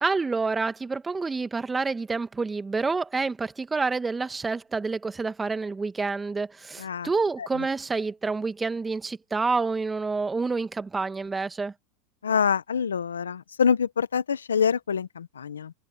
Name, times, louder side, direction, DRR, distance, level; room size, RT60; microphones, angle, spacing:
voice 1, 0.0-11.7, right 4 dB, 15° right, 1.7 m, -28 dB
voice 2, 12.2-15.7, left 7 dB, 90° left, 1.0 m, -25 dB
hypercardioid pair, 95°, 0 cm